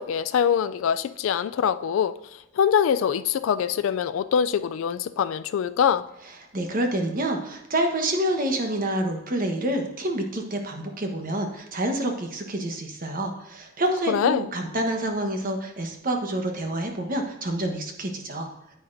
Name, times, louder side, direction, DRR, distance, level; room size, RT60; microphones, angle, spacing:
voice 1, 0.0-2.1 2.6-6.0 14.1-14.5, left 8 dB, 70° left, 12 dB, 0.3 m, -23 dB
voice 2, 6.5-18.5, right 1 dB, 40° right, 4 dB, 1.1 m, -27 dB
9.6 x 8.4 x 2.6 m, 0.92 s
head